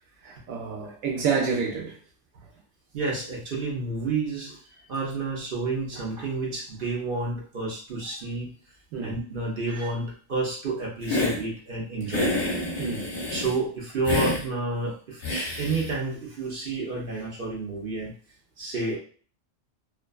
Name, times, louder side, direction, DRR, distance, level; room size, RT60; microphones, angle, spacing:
voice 1, 0.2-2.0 8.9-9.2 12.8-13.1, right 5 dB, 90° right, 1.0 m, -28 dB
voice 2, 2.9-4.6 4.9-8.5 9.0-12.4 13.3-15.2 15.6-18.1 18.6-19.0, right 3 dB, 50° right, 0.8 m, -30 dB
Hiss, 11.0-11.4 12.1-13.6 14.0-14.4 15.2-15.9, left 2 dB, 45° left, 0.8 m, -28 dB
2.5 x 2.3 x 2.2 m
omnidirectional pair, 1.3 m